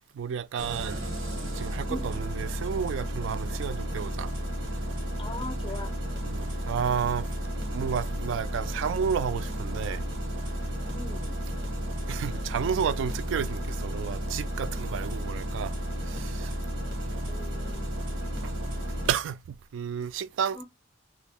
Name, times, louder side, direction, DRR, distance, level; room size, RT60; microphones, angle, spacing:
voice 1, 0.2-1.0 1.5-4.3 6.3-7.3 7.7-10.0 12.1-15.7 16.1-16.5 19.1-20.6, right 7 dB, 70° right, 0.3 m, -31 dB
Engine starting, 0.6-19.1, equal, 90° right, 1.2 m, -33 dB
voice 2, 1.9-2.2 5.2-5.9 10.9-11.4 17.3-17.9 20.5-20.6, left 2 dB, 25° left, 0.6 m, -40 dB
2.6 x 2.4 x 3.3 m
head